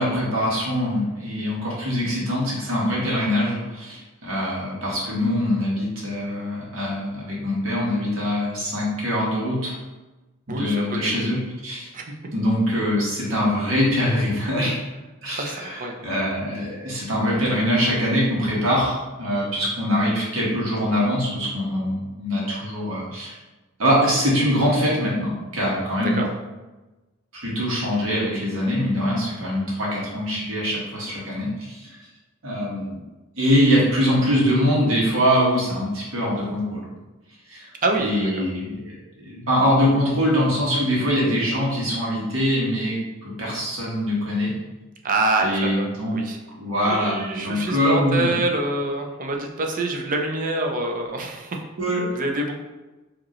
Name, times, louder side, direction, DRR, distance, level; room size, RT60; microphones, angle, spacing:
voice 1, 0.0-9.8 10.5-11.9 12.3-14.8 15.2-23.4 23.8-26.2 27.3-32.0 32.4-33.0 33.4-36.8 37.5-37.7 38.0-44.5 45.4-46.2 46.5-48.3 51.8-52.1, equal, 75° right, -5 dB, 1.5 m, -23 dB
voice 2, 10.5-10.8 11.9-12.0 15.3-16.1 26.0-26.3 37.8-38.5 45.0-46.4 46.8-51.6 52.1-52.6, right 2 dB, 40° right, 2 dB, 0.6 m, -26 dB
4.9 x 2.9 x 3.1 m, 1.1 s
head